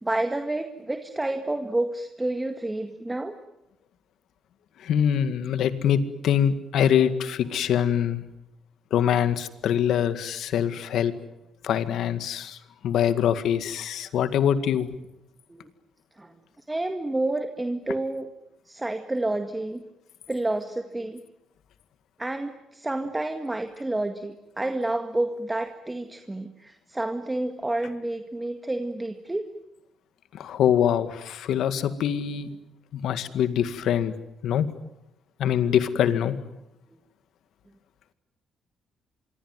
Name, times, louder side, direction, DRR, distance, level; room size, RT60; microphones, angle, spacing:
voice 1, 0.0-3.4 15.5-15.7 16.2-16.3 16.7-18.3 18.7-19.8 20.3-21.2 22.2-29.4 35.5-35.6, right 2 dB, 15° right, 7 dB, 1.9 m, -29 dB
voice 2, 4.8-8.2 8.9-11.1 11.6-12.6 12.8-14.9 30.3-32.5 32.9-34.1 34.4-34.7 35.4-36.4, left 9 dB, 75° left, 11 dB, 2.0 m, -24 dB
25.5 x 23.5 x 9.4 m, 0.88 s
cardioid pair, 90°, 0 cm